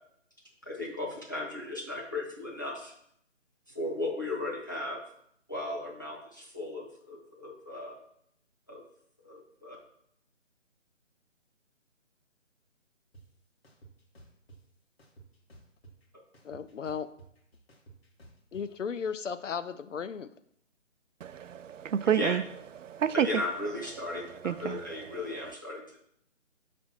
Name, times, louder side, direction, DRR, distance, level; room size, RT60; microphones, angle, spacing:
voice 1, 0.7-2.9 3.7-5.0 5.5-8.0 8.7-8.8 9.2-9.8 22.1-22.4 23.1-26.0, left 2 dB, 15° left, 0.6 m, -36 dB
sound 1, 13.1-13.2 13.6-14.6 15.0-16.1 16.3-18.6, right 3 dB, 50° left, 1.6 m, -53 dB
voice 2, 16.4-17.1 18.5-20.3, left 6 dB, 75° left, 0.6 m, -35 dB
voice 3, 21.2-22.4 22.8-23.3 24.4-24.8, right 9 dB, 80° right, 0.5 m, -28 dB
5.2 x 3.4 x 5.5 m
figure-of-eight pair, 160°, 37 cm